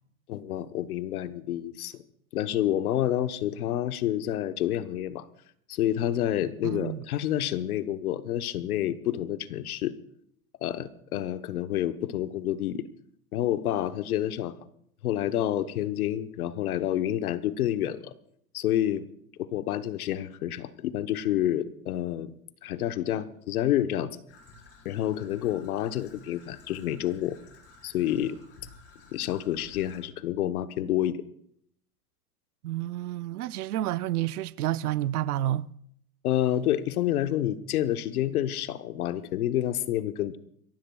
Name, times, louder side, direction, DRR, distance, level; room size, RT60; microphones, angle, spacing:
voice 1, 0.3-2.0 2.3-5.3 5.7-10.0 10.6-12.9 13.3-14.5 15.0-18.1 18.5-19.1 19.4-22.3 22.6-24.2 24.8-27.4 27.8-28.4 29.1-31.2 36.2-40.4, left 12 dB, 75° left, 1.1 m, -28 dB
voice 2, 6.6-7.0 32.6-35.7, right 14 dB, 85° right, 0.7 m, -29 dB
Traffic noise roadway noise / Trickle dribble, 24.3-30.0, left 3 dB, 30° left, 4.9 m, -54 dB
27.0 x 15.0 x 2.4 m
supercardioid pair, 145°, 44 cm